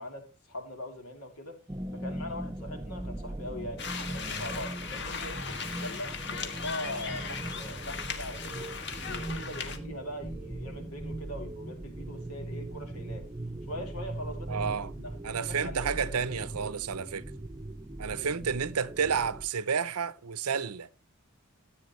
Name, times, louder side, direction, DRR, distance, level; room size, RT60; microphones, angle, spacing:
voice 1, 0.0-1.6 1.9-8.8 9.0-13.3 13.7-16.4 18.0-18.4, left 1 dB, 85° left, 3.1 m, -42 dB
sound 1, 1.7-19.5, right 1 dB, 15° right, 0.6 m, -39 dB
sound 2, 3.8-9.8, left 6 dB, 50° left, 1.6 m, -38 dB
voice 2, 14.5-14.9 15.2-17.3 18.0-20.9, right 6 dB, 85° right, 0.7 m, -31 dB
14.0 x 8.7 x 3.1 m
head